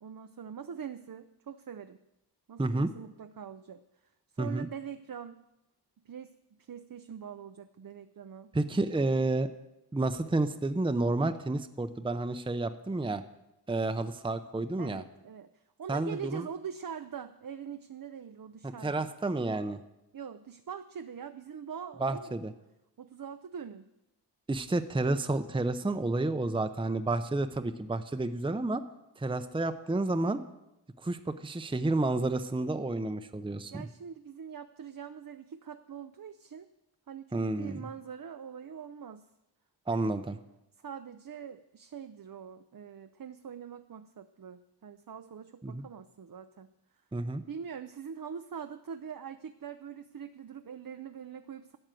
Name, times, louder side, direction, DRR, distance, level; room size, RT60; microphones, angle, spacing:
voice 1, 0.0-2.0 2.5-3.8 4.3-5.4 6.1-8.5 14.8-19.1 20.1-22.3 23.0-23.9 33.7-36.7 37.1-39.3 39.9-40.1 40.8-46.7 47.5-51.8, right 7 dB, 55° right, 9 dB, 0.6 m, -43 dB
voice 2, 2.6-2.9 4.4-4.7 8.5-9.5 9.9-13.2 13.7-15.0 15.9-16.4 18.6-19.8 22.0-22.5 24.5-28.8 29.2-30.4 31.0-33.9 37.3-37.8 39.9-40.4 45.6-45.8 47.1-47.4, right 2 dB, 10° right, 9 dB, 0.6 m, -30 dB
12.5 x 6.4 x 9.1 m, 0.90 s
wide cardioid pair, 60°, 41 cm